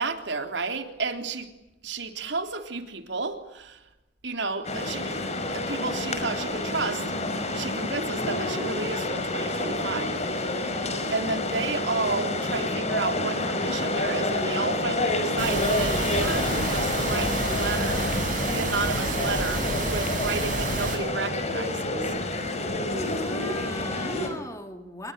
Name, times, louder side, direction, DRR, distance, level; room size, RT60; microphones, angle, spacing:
voice 1, 0.0-1.5 1.8-3.8 4.2-10.2 10.6-18.1 18.5-22.1, right 3 dB, 75° right, 3.5 m, -32 dB
sound 1, 4.6-24.3, left 2 dB, 40° left, 5.6 m, -28 dB
sound 2, 15.4-21.0, right 2 dB, 45° right, 8.0 m, -29 dB
voice 2, 22.9-25.1, left 1 dB, 20° left, 3.0 m, -39 dB
28.0 x 22.0 x 9.1 m
head